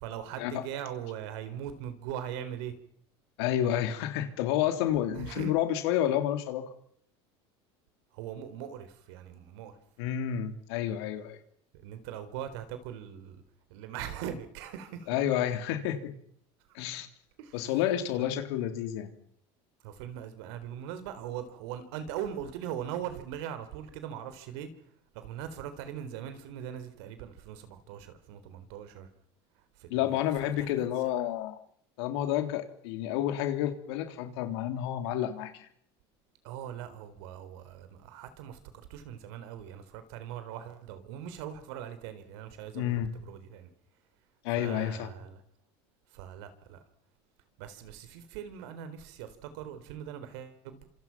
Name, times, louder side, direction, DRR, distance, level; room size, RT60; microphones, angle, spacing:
voice 1, 0.0-2.7 5.1-5.5 8.1-9.8 11.8-13.4 13.7-15.1 16.8-16.9 17.4-17.7 18.2-18.3 19.8-24.7 25.1-29.1 29.8-31.1 36.4-43.7 44.6-45.4 46.1-46.8 47.6-50.8, right 9 dB, 75° right, 10 dB, 4.1 m, -41 dB
voice 2, 3.4-6.6 10.0-11.4 15.1-16.1 16.7-17.1 17.5-19.1 29.9-31.6 32.0-35.7 42.7-43.1 44.4-45.1, left 11 dB, 80° left, 7 dB, 3.3 m, -30 dB
27.0 x 26.5 x 6.0 m, 0.66 s
supercardioid pair, 110°, 14 cm